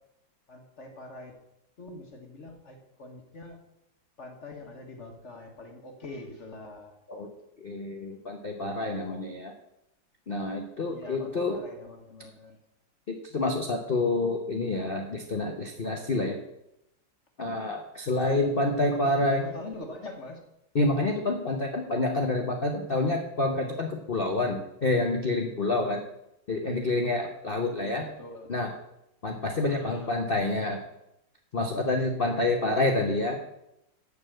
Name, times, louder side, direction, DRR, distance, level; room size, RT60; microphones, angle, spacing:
voice 1, 0.5-1.3 1.8-3.6 4.2-6.9 10.8-12.6 18.3-20.4 27.8-28.5 29.6-30.1, left 2 dB, 40° left, 3 dB, 1.2 m, -44 dB
voice 2, 7.6-9.5 10.3-11.6 13.3-16.4 17.4-19.4 20.7-26.0 26.5-28.1 28.5-28.7 29.2-30.8 31.5-33.4, left 2 dB, 60° left, 2 dB, 0.5 m, -28 dB
6.9 x 6.8 x 7.8 m, 0.84 s
omnidirectional pair, 2.3 m